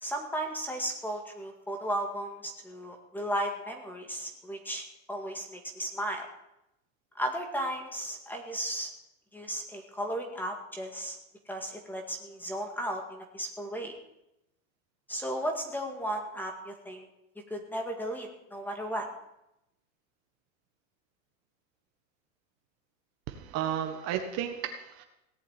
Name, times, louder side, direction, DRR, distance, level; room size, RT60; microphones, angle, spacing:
voice 1, 0.0-6.3 7.2-8.9 9.3-11.2 11.5-13.9 15.1-17.1 17.5-19.1, right 1 dB, 5° left, 3 dB, 2.0 m, -35 dB
voice 2, 23.3-25.1, right 9 dB, 40° right, 6 dB, 1.5 m, -33 dB
17.5 x 7.6 x 9.0 m, 0.85 s
supercardioid pair, 155°, 41 cm